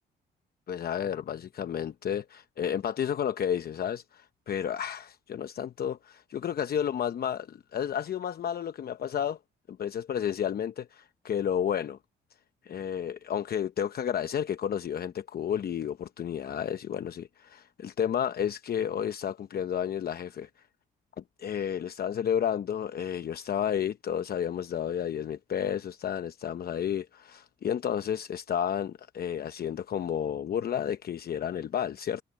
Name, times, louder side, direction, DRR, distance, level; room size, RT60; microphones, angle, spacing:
voice 1, 0.7-9.4 9.7-12.0 12.6-20.5 21.2-32.2, left 9 dB, 50° left, 0.9 m, -31 dB
cardioid pair, 90°, 20 cm